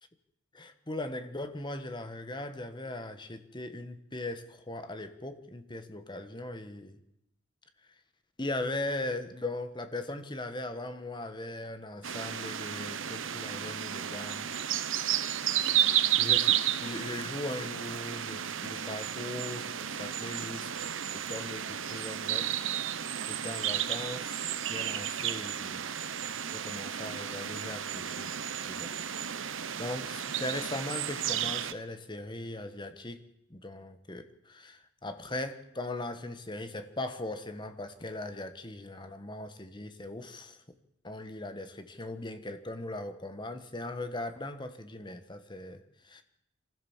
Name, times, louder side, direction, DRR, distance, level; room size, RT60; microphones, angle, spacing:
voice 1, 0.5-7.0 8.4-14.5 16.2-22.5 23.3-26.1 26.5-28.3 28.6-28.9 29.5-33.2 33.5-40.6 41.0-46.2, left 2 dB, 25° left, 9 dB, 1.4 m, -39 dB
sound 1, 12.0-31.7, right 10 dB, 70° right, 1.0 m, -32 dB
25.0 x 15.5 x 7.4 m, 0.87 s
head